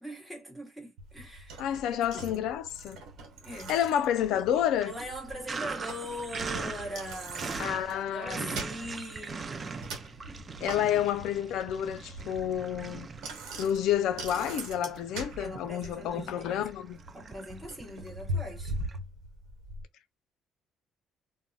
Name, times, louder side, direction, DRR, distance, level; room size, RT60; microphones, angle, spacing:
voice 1, 0.0-1.6 1.9-2.5 3.4-3.8 4.8-7.8 8.1-9.8 15.4-16.7 17.1-18.8, equal, 5° right, 1.0 m, -41 dB
Bicycle, 1.0-19.8, right 1 dB, 80° right, 0.9 m, -42 dB
voice 2, 1.6-3.0 3.7-4.9 7.6-8.6 10.6-13.1 13.6-17.0, left 10 dB, 80° left, 0.3 m, -29 dB
Sink (filling or washing), 1.6-2.5 2.9-19.0, right 4 dB, 30° right, 0.3 m, -42 dB
2.2 x 2.0 x 3.7 m
cardioid pair, 105°, 0 cm